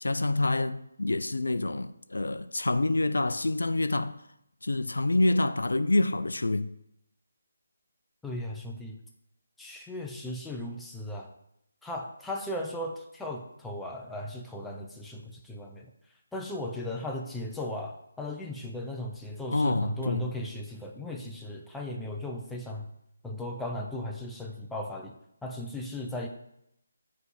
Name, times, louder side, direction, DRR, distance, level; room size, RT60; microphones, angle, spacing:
voice 1, 0.0-4.2 4.6-6.7 19.5-20.3, left 2 dB, 90° left, 0.4 m, -27 dB
voice 2, 8.2-9.0 9.6-11.3 11.8-15.9 16.3-22.9 23.2-25.2 25.4-26.3, left 1 dB, 5° left, 0.5 m, -37 dB
9.3 x 3.3 x 4.2 m
figure-of-eight pair, 160°, 0 cm